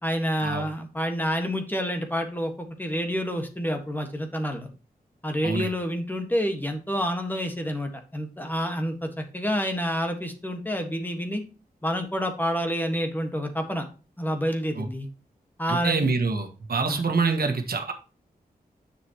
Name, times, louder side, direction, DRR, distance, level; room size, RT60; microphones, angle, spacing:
voice 1, 0.0-4.7 5.2-11.4 11.8-13.8 14.2-15.1 15.6-16.1 16.9-17.0, equal, 10° left, 5 dB, 1.5 m, -28 dB
voice 2, 15.7-17.9, right 4 dB, 70° right, 5 dB, 1.5 m, -26 dB
9.7 x 7.1 x 3.0 m, 0.33 s
wide cardioid pair, 135°, 16 cm